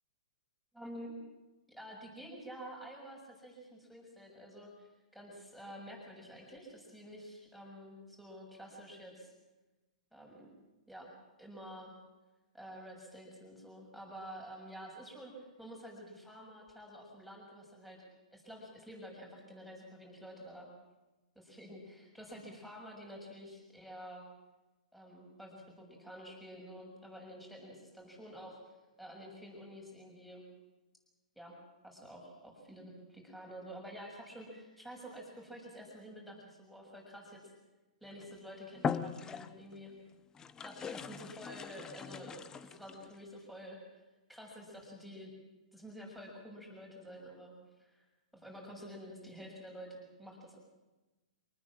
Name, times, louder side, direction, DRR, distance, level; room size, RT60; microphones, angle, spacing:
voice 1, 0.7-1.1 1.7-9.3 10.1-10.5 10.9-11.1 11.4-11.9 12.5-18.0 18.3-20.7 21.3-24.2 24.9-30.4 31.3-31.5 31.8-37.5 38.0-39.9 40.6-43.8 44.3-45.3 45.7-47.5 47.8-48.0 48.3-50.6, equal, ahead, -1 dB, 6.8 m, -49 dB
sound 1, 38.1-38.3 38.8-39.8 40.3-43.1, left 6 dB, 15° left, 0.9 m, -40 dB
24.5 x 19.5 x 7.5 m, 1.1 s
hypercardioid pair, 140°, 4 cm